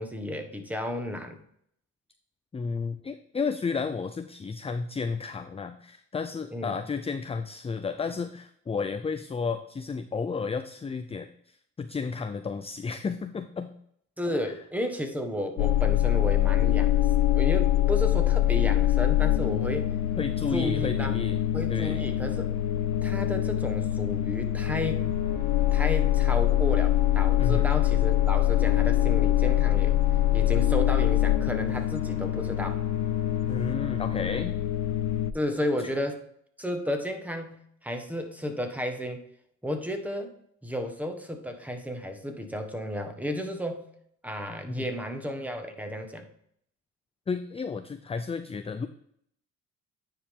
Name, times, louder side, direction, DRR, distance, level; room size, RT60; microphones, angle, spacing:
voice 1, 0.0-1.4 6.5-6.7 14.2-17.0 17.3-19.9 20.5-21.1 21.5-22.5 23.0-25.1 25.7-30.0 30.3-32.8 35.3-36.2 36.6-39.2 39.6-40.3 40.6-43.8 44.2-46.2, left 1 dB, 5° right, 5 dB, 1.5 m, -32 dB
voice 2, 2.5-13.7 14.4-14.5 20.2-21.4 21.7-22.0 27.4-27.7 33.5-34.6 35.8-35.9 44.8-44.9 47.3-48.9, left 5 dB, 20° left, 9 dB, 0.5 m, -32 dB
sound 1, 15.6-35.3, left 13 dB, 80° left, 0.5 m, -24 dB
sound 2, 25.0-34.4, left 1 dB, 75° right, 3.6 m, -50 dB
9.8 x 4.9 x 3.7 m, 0.68 s
cardioid pair, 90°, 30 cm